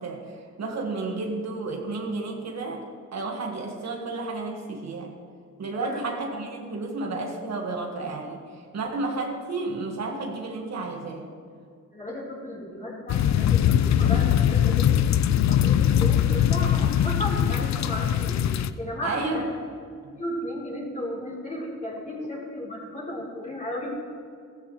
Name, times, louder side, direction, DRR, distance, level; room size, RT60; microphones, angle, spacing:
voice 1, 0.0-2.8 3.1-5.1 5.6-11.3 19.0-19.4 20.0-20.2, right 3 dB, 60° right, 1 dB, 1.6 m, -32 dB
voice 2, 11.9-15.0 15.4-18.4 18.8-19.4 20.2-23.9, left 1 dB, 25° left, -5 dB, 3.9 m, -34 dB
sound 1, 13.1-18.7, left 10 dB, 60° left, 0.5 m, -21 dB
16.0 x 15.0 x 3.1 m, 2.2 s
cardioid pair, 120°, 31 cm